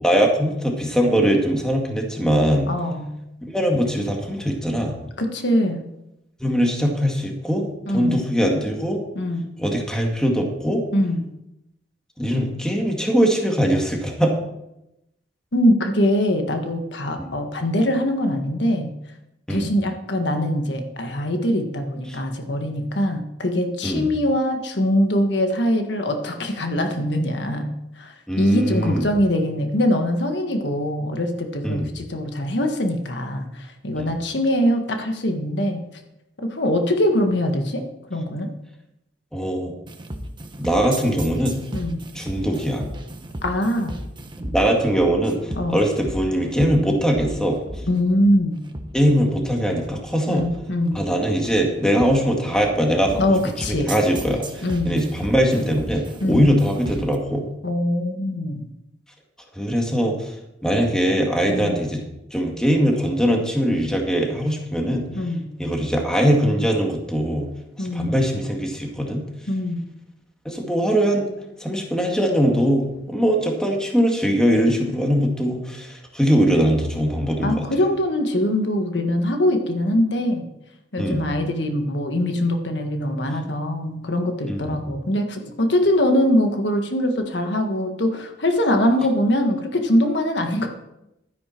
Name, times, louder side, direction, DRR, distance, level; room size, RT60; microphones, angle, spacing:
voice 1, 0.0-2.7 3.5-5.0 6.4-7.7 7.9-9.0 9.6-10.8 12.2-14.3 17.2-17.3 19.5-19.7 22.1-22.2 23.8-24.1 28.3-29.1 31.6-31.9 33.9-34.1 39.3-39.7 40.6-41.6 42.1-42.8 44.5-47.6 48.9-50.4 50.9-53.2 53.7-57.5 59.5-60.3 60.6-62.0 62.3-65.1 65.6-67.5 67.8-69.2 70.5-71.3 71.6-77.6 81.0-81.2 84.5-84.8, equal, 5° left, 1 dB, 2.0 m, -21 dB
voice 2, 2.7-3.1 5.2-5.8 7.9-8.2 9.1-9.4 10.9-11.2 15.5-18.9 19.5-27.7 28.0-35.8 36.5-37.8 38.1-38.5 41.7-42.1 43.4-43.9 45.6-45.8 47.9-48.6 50.3-51.0 53.2-53.9 54.6-55.1 56.2-56.5 57.6-58.7 61.5-61.7 65.1-65.5 67.8-68.1 69.5-69.8 77.4-80.5 80.9-90.7, left 1 dB, 70° left, 4 dB, 1.5 m, -22 dB
sound 1, 39.9-57.2, right 1 dB, 25° right, 1.1 m, -35 dB
12.5 x 10.0 x 4.5 m, 0.86 s
head